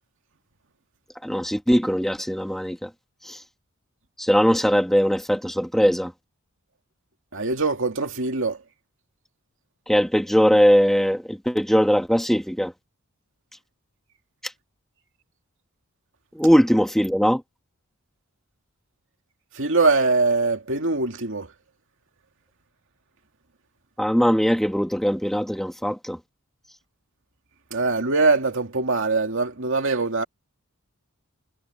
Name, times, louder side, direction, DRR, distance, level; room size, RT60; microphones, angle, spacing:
voice 1, 1.2-2.9 4.2-6.1 9.9-12.7 16.4-17.4 24.0-26.2, equal, ahead, 1.7 m, -20 dB
voice 2, 7.3-8.6 19.6-21.5 27.7-30.2, right 3 dB, 60° right, 2.5 m, -22 dB
head